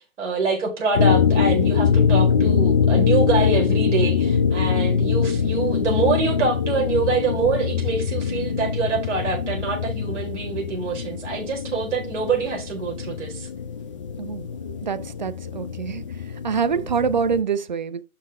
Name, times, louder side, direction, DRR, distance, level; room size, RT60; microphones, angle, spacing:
voice 1, 0.2-13.5, right 4 dB, 50° right, 4.8 m, -25 dB
sound 1, 0.9-17.4, left 6 dB, 20° left, 0.7 m, -23 dB
voice 2, 14.8-16.0 16.4-18.0, right 6 dB, 30° right, 0.5 m, -25 dB
12.0 x 4.4 x 3.6 m
hypercardioid pair, 150°, 44 cm